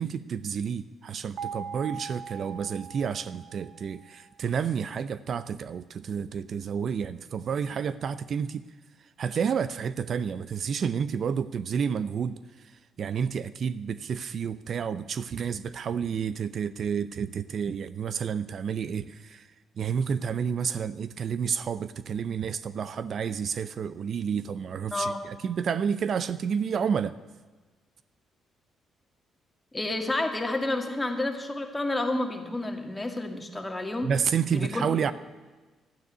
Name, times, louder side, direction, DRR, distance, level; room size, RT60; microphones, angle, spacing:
voice 1, 0.0-8.6 9.0-19.5 19.8-27.1 34.0-35.1, right 7 dB, 55° right, 15 dB, 0.5 m, -30 dB
sound 1, 1.4-4.3, right 6 dB, 80° right, 1.3 m, -41 dB
voice 2, 24.9-25.2 29.7-34.1 34.5-34.9, left 2 dB, 15° left, 4 dB, 2.1 m, -30 dB
12.5 x 9.5 x 9.9 m, 1.3 s
cardioid pair, 90°, 0 cm